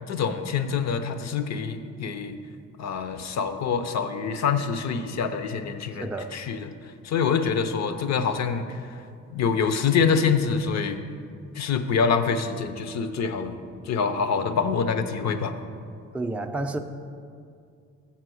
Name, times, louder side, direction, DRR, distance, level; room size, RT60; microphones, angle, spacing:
voice 1, 0.1-2.4 2.8-6.7 7.0-8.8 9.3-11.0 11.5-13.6 13.9-15.5, left 6 dB, 65° left, 10 dB, 0.7 m, -25 dB
voice 2, 6.0-6.3 16.1-16.8, right 2 dB, 5° right, 4 dB, 0.4 m, -30 dB
7.4 x 5.8 x 6.2 m, 2.3 s
cardioid pair, 90°, 30 cm